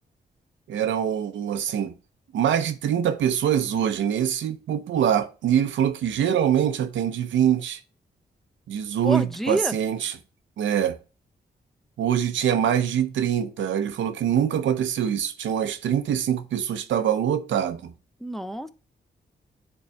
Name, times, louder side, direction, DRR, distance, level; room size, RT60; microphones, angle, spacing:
voice 1, 0.7-1.9 2.3-7.8 8.7-10.1 10.6-11.0 12.0-17.9, right 9 dB, 90° right, 0.6 m, -24 dB
voice 2, 9.0-9.7 18.2-18.7, right 1 dB, ahead, 0.5 m, -28 dB
8.7 x 3.6 x 3.3 m
cardioid pair, 60°, 19 cm